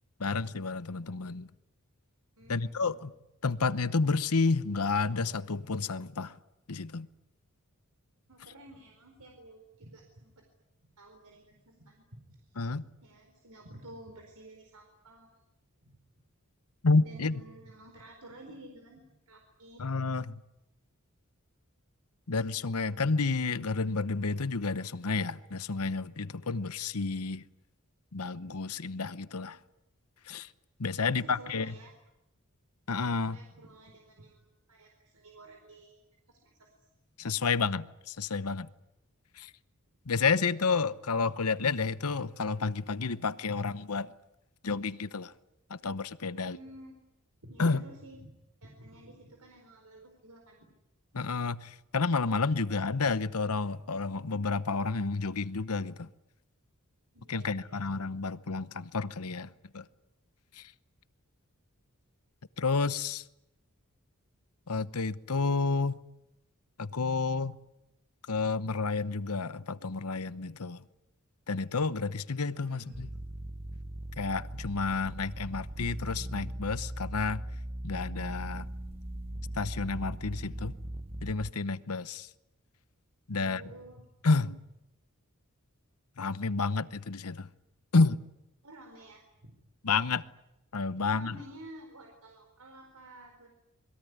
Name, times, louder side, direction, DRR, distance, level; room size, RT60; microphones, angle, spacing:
voice 1, 0.2-1.5 2.5-3.1 3.4-6.3 6.7-7.1 12.6-12.8 16.8-17.4 19.8-20.4 22.3-27.4 28.1-29.6 30.3-30.5 30.8-31.7 32.9-33.4 37.2-38.7 39.4-39.5 40.1-44.1 44.6-45.3 45.7-46.6 47.6-47.8 51.1-56.1 57.3-59.9 60.5-60.7 62.6-63.2 64.7-66.0 66.8-67.6 68.3-70.8 71.5-73.1 74.2-77.4 77.8-78.7 79.6-80.7 81.2-82.3 83.3-83.6 84.2-84.6 86.2-87.5 87.9-88.2 89.8-90.2 90.7-91.4, left 4 dB, 80° left, 1.0 m, -30 dB
voice 2, 2.4-3.1 8.3-10.4 10.8-15.3 15.8-16.2 17.0-19.9 31.0-31.9 33.1-36.0 36.3-36.9 37.2-37.3 46.3-47.0 47.4-48.3 48.6-50.7 57.1-57.8 72.6-73.0 83.3-84.1 88.6-89.5 91.0-93.5, right 1 dB, 85° right, 4.5 m, -51 dB
sound 1, 72.9-81.5, right 1 dB, 25° right, 1.0 m, -39 dB
27.0 x 22.0 x 9.6 m
head